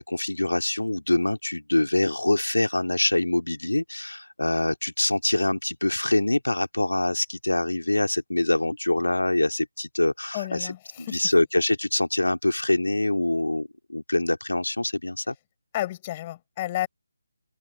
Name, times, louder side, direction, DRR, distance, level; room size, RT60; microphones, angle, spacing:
voice 1, 0.0-15.3, left 2 dB, 85° left, 2.7 m, -25 dB
voice 2, 10.3-11.2 15.7-16.9, left 14 dB, 25° left, 7.9 m, -31 dB
open air
figure-of-eight pair, 155°, 0 cm